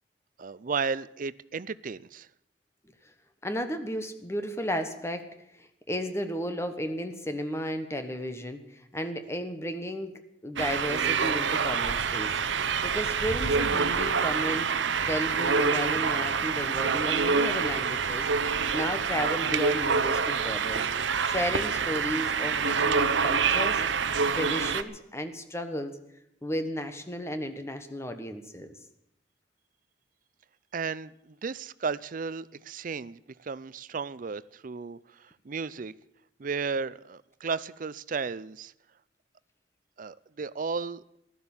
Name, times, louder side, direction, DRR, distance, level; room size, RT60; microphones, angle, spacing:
voice 1, 0.4-2.3 30.7-35.9 36.4-38.7 40.0-41.0, right 5 dB, 45° right, 17 dB, 0.5 m, -34 dB
voice 2, 3.4-5.3 5.6-10.1 10.4-14.7 15.1-23.8 24.3-25.9 26.4-28.7, equal, 15° left, 8 dB, 1.3 m, -34 dB
sound 1, 10.6-24.8, right 5 dB, 90° right, 0.8 m, -26 dB
15.5 x 12.5 x 7.2 m, 0.78 s
head